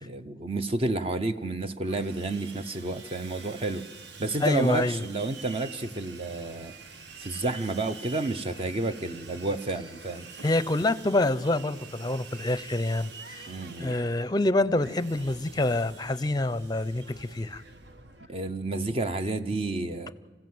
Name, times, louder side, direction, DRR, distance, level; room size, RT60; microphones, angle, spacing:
voice 1, 0.0-3.8 4.2-6.7 7.2-10.3 13.5-14.0 18.3-20.1, right 2 dB, 35° right, 10 dB, 0.7 m, -30 dB
Sawing, 1.8-18.3, right 4 dB, 65° right, 1.4 m, -47 dB
voice 2, 4.4-5.0 10.4-13.5 13.8-17.6, left 2 dB, 20° left, 16 dB, 0.6 m, -26 dB
26.0 x 15.5 x 7.8 m, 1.5 s
head